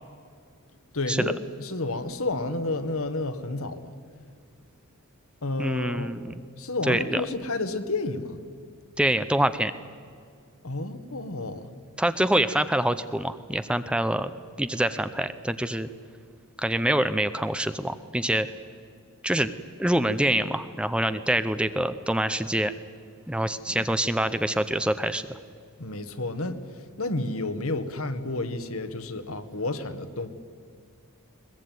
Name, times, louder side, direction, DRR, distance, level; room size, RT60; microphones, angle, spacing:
voice 1, 0.9-3.9 5.4-6.1 6.6-8.4 10.6-11.7 23.8-23.9 25.8-30.3, left 2 dB, 70° left, 9 dB, 1.6 m, -31 dB
voice 2, 5.6-6.3 6.9-7.2 9.0-9.7 12.0-14.3 14.6-15.9 16.6-18.5 19.2-19.5 19.8-22.7 23.3-25.4, right 1 dB, 5° right, 12 dB, 0.6 m, -25 dB
21.5 x 21.5 x 9.4 m, 2.1 s
head